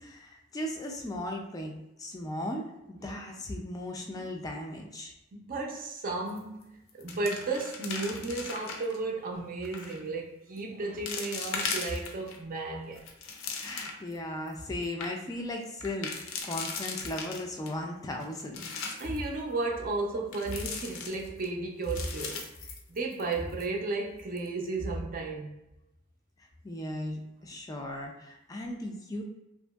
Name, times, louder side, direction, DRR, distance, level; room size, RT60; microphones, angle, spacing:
voice 1, 0.0-5.1 13.6-16.1 16.4-18.7 26.6-29.2, left 1 dB, 20° left, 0.3 m, -37 dB
voice 2, 5.3-6.7 6.9-13.0 19.0-22.5 22.9-25.5, right 3 dB, 45° right, 0.5 m, -33 dB
sound 1, 6.3-6.6 6.9-9.0 9.6-10.0 10.6-10.7 11.1-12.4 12.8-14.1 14.5-14.6 14.8-15.1 15.8-17.7 18.2-19.2 20.3-21.5 21.8-23.3 23.6-23.7 24.2-24.5, left 5 dB, 80° left, 0.5 m, -38 dB
2.8 x 2.5 x 2.3 m
head